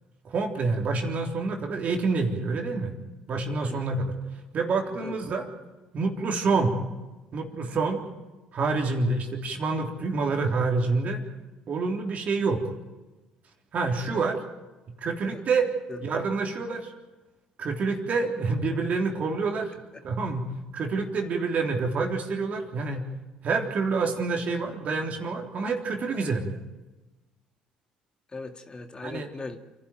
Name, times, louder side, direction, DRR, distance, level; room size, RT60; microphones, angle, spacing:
voice 1, 0.2-2.9 3.3-4.1 4.5-5.5 5.9-6.8 7.3-8.0 8.5-11.2 11.7-12.7 13.7-14.4 15.0-15.7 16.0-16.9 17.6-19.7 20.0-20.5 20.7-23.0 23.4-26.6 29.0-29.3, right 4 dB, 50° right, 2 dB, 3.5 m, -27 dB
voice 2, 28.3-29.6, left 3 dB, 30° left, 5 dB, 2.1 m, -39 dB
28.0 x 11.5 x 9.2 m, 1.1 s
hypercardioid pair, 60°, 3 cm